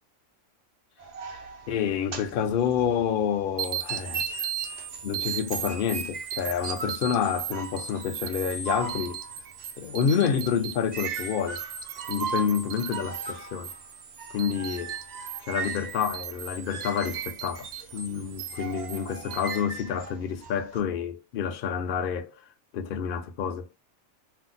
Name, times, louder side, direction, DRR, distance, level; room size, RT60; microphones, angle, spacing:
sound 1, 1.0-3.5 3.9-20.8, right 5 dB, 50° right, 0.5 m, -39 dB
voice 1, 1.7-4.5 5.0-9.2 9.8-11.6 12.1-13.7 14.3-15.0 15.4-22.4 22.7-23.7, left 7 dB, 60° left, 0.6 m, -28 dB
sound 2, 3.6-19.6, right 10 dB, 70° right, 0.8 m, -37 dB
2.6 x 2.0 x 3.9 m
omnidirectional pair, 1.3 m